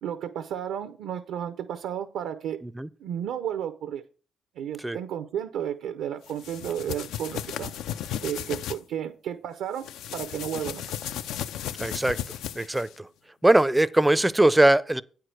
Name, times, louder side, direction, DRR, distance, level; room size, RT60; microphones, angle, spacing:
voice 1, 0.0-2.6 3.0-4.0 4.6-7.7 8.2-11.1, right 9 dB, 85° right, 0.6 m, -33 dB
sound 1, 6.3-8.8 9.8-12.9, left 10 dB, 85° left, 0.4 m, -35 dB
voice 2, 11.8-12.2 12.6-13.1 13.4-15.0, right 1 dB, 10° right, 0.4 m, -21 dB
8.9 x 4.7 x 6.3 m
cardioid pair, 90°, 0 cm